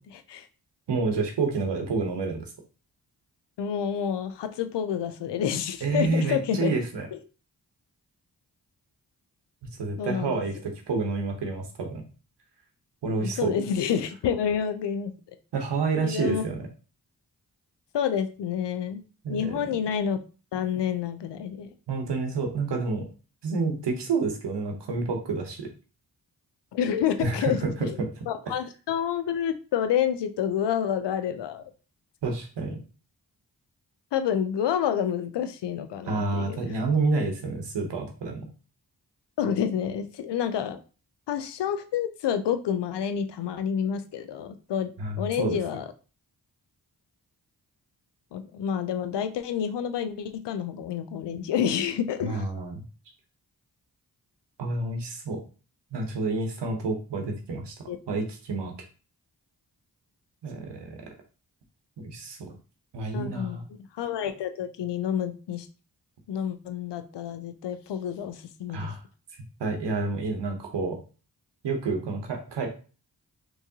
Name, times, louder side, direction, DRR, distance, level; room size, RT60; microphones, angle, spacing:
voice 1, 0.9-2.5 5.8-7.1 9.8-12.0 13.0-13.5 15.5-16.6 19.2-19.6 21.9-23.1 23.4-25.7 27.2-28.1 32.2-32.8 36.0-38.4 45.0-45.6 52.2-52.8 54.6-55.4 55.9-57.8 58.1-58.7 60.4-61.0 62.0-62.5 62.9-63.6 68.7-69.0 69.6-71.0 71.6-72.7, right 3 dB, 85° right, 3 dB, 0.9 m, -29 dB
voice 2, 3.6-6.7 7.1-7.2 10.0-10.4 13.2-15.1 16.0-16.4 17.9-19.0 19.3-20.2 20.5-21.7 26.7-31.6 34.1-36.7 39.4-40.8 41.3-44.9 45.2-45.9 48.3-52.5 57.9-58.0 63.1-63.6 63.9-65.7 66.3-68.9, left 8 dB, 85° left, 10 dB, 0.5 m, -28 dB
3.5 x 3.1 x 2.7 m, 0.36 s
cardioid pair, 40°, 41 cm